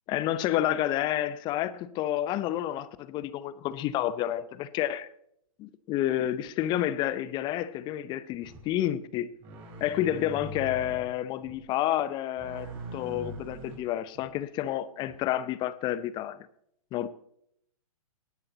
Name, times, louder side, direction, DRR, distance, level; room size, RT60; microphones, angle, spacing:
voice 1, 0.1-5.1 5.6-9.3 9.8-16.4 16.9-17.1, left 12 dB, 25° left, 0.7 m, -30 dB
sound 1, 8.4-8.7 9.4-11.1 11.4-11.7 12.4-14.3 15.1-15.2, right 1 dB, 35° right, 4.9 m, -42 dB
19.0 x 10.5 x 2.9 m
figure-of-eight pair, 120°, 19 cm